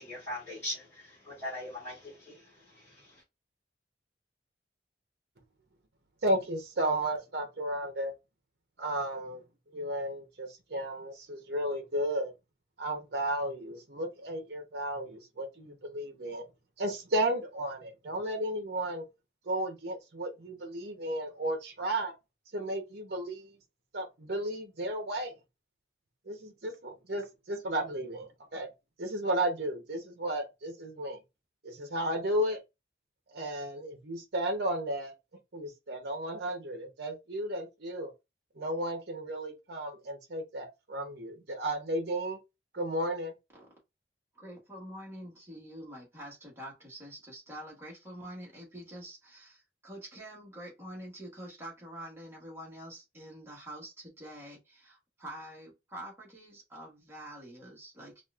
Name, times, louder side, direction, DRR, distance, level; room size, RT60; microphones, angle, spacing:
voice 1, 0.0-3.2, left 1 dB, 10° left, 1.9 m, -41 dB
voice 2, 6.2-8.1 8.8-9.4 9.7-12.3 12.8-16.4 16.8-19.0 19.5-22.1 22.5-23.6 23.9-25.3 26.3-28.7 29.0-31.2 31.6-32.6 33.3-35.1 35.5-38.1 38.6-42.4 42.7-43.3, right 1 dB, 60° right, 0.8 m, -33 dB
voice 3, 44.3-58.2, right 1 dB, 15° right, 1.4 m, -46 dB
4.1 x 2.5 x 2.3 m
head